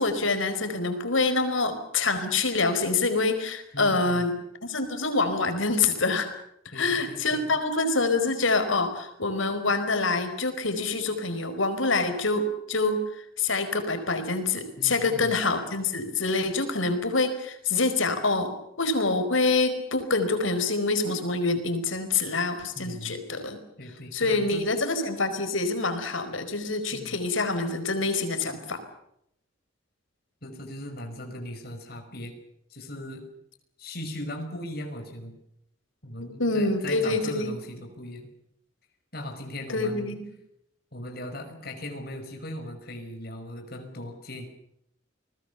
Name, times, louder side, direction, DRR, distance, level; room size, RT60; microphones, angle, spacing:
voice 1, 0.0-4.3 4.6-6.3 6.7-18.5 18.8-23.6 24.1-28.8 36.2-37.5 39.7-40.3, left 3 dB, 85° left, 9 dB, 4.7 m, -26 dB
voice 2, 3.7-4.2 6.7-7.4 14.8-15.4 22.8-23.2 23.8-24.6 26.9-27.2 30.4-32.3 32.7-33.2 33.8-35.4 36.0-38.3 39.1-40.1 40.9-44.5, left 1 dB, 50° left, 4 dB, 5.8 m, -38 dB
29.5 x 20.5 x 7.0 m, 0.74 s
head